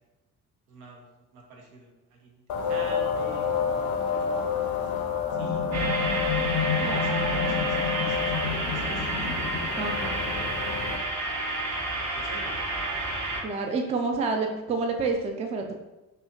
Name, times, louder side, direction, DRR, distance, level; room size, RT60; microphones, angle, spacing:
voice 1, 0.7-1.1 1.3-3.8 4.1-4.3 4.7-4.9 5.3-5.9 6.8-10.2 12.0-12.5, right 3 dB, 80° right, 0 dB, 0.6 m, -46 dB
sound 1, 2.5-11.0, left 6 dB, 55° left, 0.6 m, -28 dB
sound 2, 5.7-13.4, right 2 dB, 40° right, 0.8 m, -30 dB
voice 2, 6.8-7.6 9.8-10.2 13.4-15.7, right 4 dB, 15° right, 3 dB, 0.3 m, -29 dB
3.1 x 2.7 x 2.3 m, 1.0 s
figure-of-eight pair, 45°, 44 cm